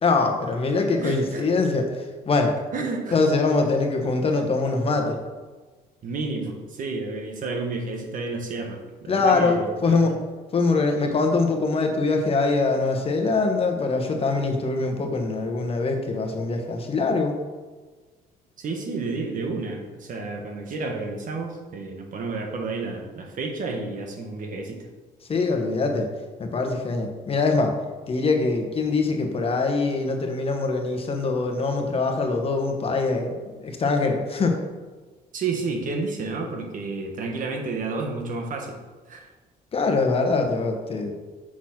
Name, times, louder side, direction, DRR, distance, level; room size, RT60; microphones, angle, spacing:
voice 1, 0.0-2.5 3.1-5.2 9.1-10.2 10.5-17.3 25.3-26.1 26.4-27.7 28.1-34.6 39.7-41.1, left 3 dB, 35° left, 3 dB, 1.2 m, -23 dB
voice 2, 1.0-1.4 2.7-3.2 6.0-10.0 18.6-24.8 35.3-38.8 39.1-39.3, right 3 dB, 50° right, 3 dB, 1.4 m, -31 dB
6.2 x 4.1 x 5.9 m, 1.3 s
cardioid pair, 110°, 17 cm